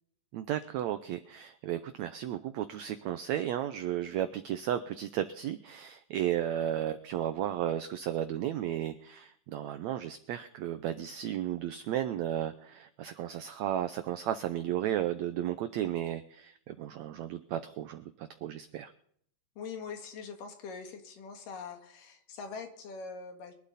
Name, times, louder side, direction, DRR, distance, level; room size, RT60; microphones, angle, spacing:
voice 1, 0.3-18.9, right 11 dB, 90° right, 10 dB, 1.5 m, -34 dB
voice 2, 19.6-23.5, left 5 dB, 70° left, 5 dB, 3.4 m, -43 dB
23.0 x 11.5 x 4.1 m, 0.66 s
omnidirectional pair, 4.0 m